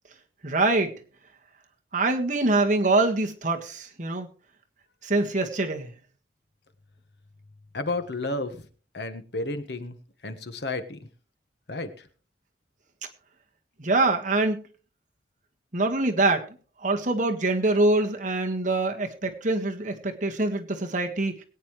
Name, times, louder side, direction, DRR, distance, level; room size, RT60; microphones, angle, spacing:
voice 1, 0.4-0.9 1.9-4.3 5.0-5.9 13.8-14.6 15.7-16.5 16.8-21.3, right 2 dB, 45° right, 3 dB, 1.7 m, -24 dB
voice 2, 7.7-8.6 8.9-10.0 10.2-11.0 11.7-11.9, left 2 dB, 65° left, 9 dB, 1.4 m, -31 dB
21.5 x 9.2 x 3.2 m, 0.37 s
head